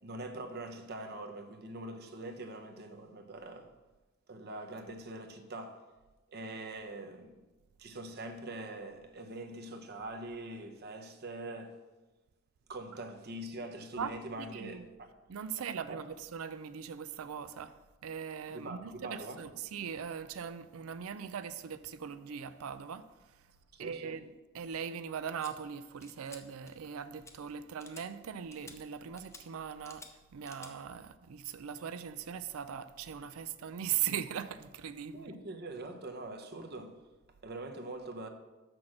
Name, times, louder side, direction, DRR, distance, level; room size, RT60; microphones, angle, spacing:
voice 1, 0.0-3.7 4.3-5.8 6.3-7.4 7.8-11.8 12.7-15.1 15.9-16.0 18.5-19.4 23.7-24.2 35.1-37.0 37.4-38.3, right 2 dB, 50° right, 0.9 m, -43 dB
voice 2, 14.0-14.8 15.3-17.8 18.0-23.1 23.8-30.1 30.3-35.3, right 8 dB, 85° right, 0.4 m, -40 dB
sound 1, 25.4-25.5 26.0-26.4 26.7-26.9 27.2-27.3 27.8-28.0 28.5-28.8 29.2-29.4 29.8-30.1 30.4-30.7, left 3 dB, 15° left, 0.6 m, -51 dB
6.1 x 6.0 x 6.4 m
head